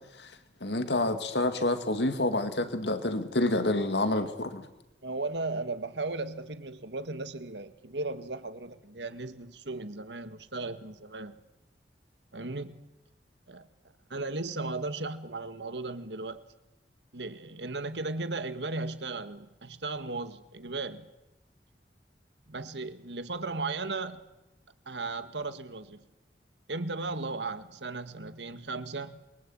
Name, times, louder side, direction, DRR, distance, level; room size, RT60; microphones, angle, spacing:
voice 1, 0.6-4.6, left 2 dB, 80° left, 8 dB, 2.2 m, -28 dB
voice 2, 5.0-11.4 12.3-12.8 13.5-13.7 14.1-16.4 17.1-21.1 22.5-24.2 24.9-26.0 26.7-29.2, right 3 dB, 85° right, 10 dB, 1.9 m, -36 dB
27.5 x 23.5 x 9.0 m, 0.94 s
head